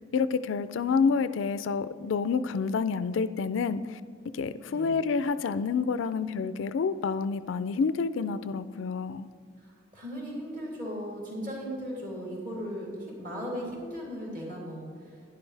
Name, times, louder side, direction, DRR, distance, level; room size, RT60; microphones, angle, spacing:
voice 1, 0.1-4.0 4.3-9.3, left 5 dB, 80° left, 14 dB, 0.4 m, -28 dB
voice 2, 9.6-15.2, equal, 45° right, -4 dB, 2.9 m, -37 dB
11.5 x 10.5 x 3.3 m, 2.1 s
head